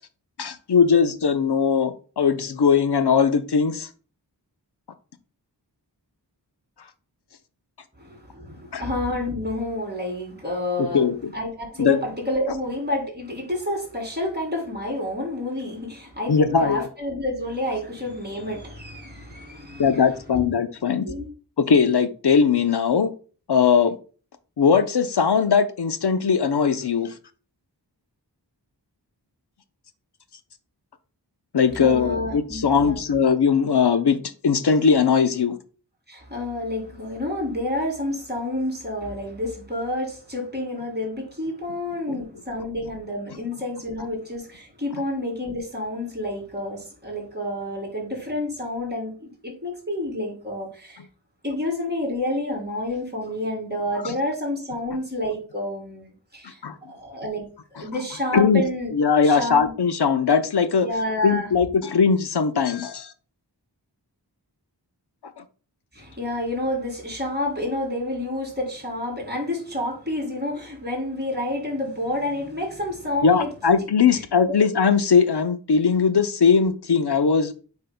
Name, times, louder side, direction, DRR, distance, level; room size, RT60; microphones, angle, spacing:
voice 1, 0.4-3.9 8.7-8.8 10.8-11.3 11.8-12.0 16.3-16.9 19.8-21.1 21.6-23.1 23.5-24.0 24.6-27.1 31.5-34.2 34.4-35.6 42.1-42.2 54.0-54.1 56.6-56.8 58.3-58.6 58.9-60.9 61.2-63.1 73.2-77.5, left 6 dB, 70° left, 0.8 m, -20 dB
voice 2, 8.0-11.0 11.3-20.0 20.3-20.4 21.0-21.3 31.8-33.0 36.1-51.0 51.4-56.6 56.9-58.9 59.2-59.7 60.8-61.5 65.9-73.5 74.1-74.6, left 1 dB, 25° right, 3.4 m, -29 dB
7.7 x 5.4 x 2.3 m
wide cardioid pair, 50°, 42 cm